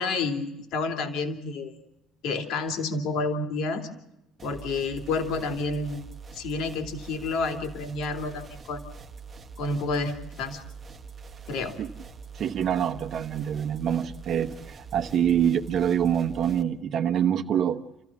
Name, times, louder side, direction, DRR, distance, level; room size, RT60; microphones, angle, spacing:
voice 1, 0.0-1.8 2.2-3.9 4.4-6.0 6.3-8.8 9.6-10.6 11.5-11.8, left 3 dB, 60° left, 6 dB, 2.7 m, -29 dB
sound 1, 4.4-16.6, right 5 dB, 15° right, 1.3 m, -44 dB
voice 2, 12.3-17.8, right 9 dB, 40° right, 7 dB, 1.0 m, -25 dB
29.0 x 15.0 x 7.2 m, 0.88 s
cardioid pair, 175°, 0 cm